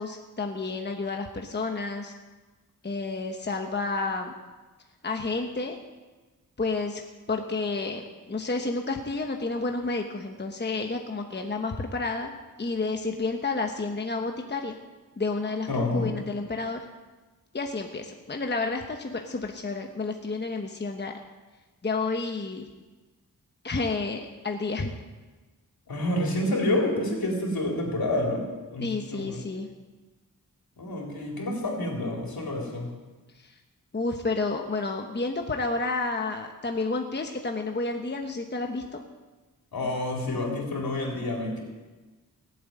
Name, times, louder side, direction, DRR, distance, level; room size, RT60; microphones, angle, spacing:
voice 1, 0.0-2.1 2.8-4.3 5.0-5.8 6.6-7.0 7.3-12.3 12.6-14.8 15.2-16.8 17.5-21.1 21.8-22.6 23.6-24.9 28.8-29.7 33.9-39.0, left 3 dB, 30° left, 3 dB, 1.1 m, -30 dB
voice 2, 15.7-16.1 25.9-29.4 30.8-32.9 39.7-41.6, left 1 dB, 80° left, -1 dB, 3.9 m, -28 dB
18.0 x 7.9 x 9.0 m, 1.3 s
wide cardioid pair, 115°, 35 cm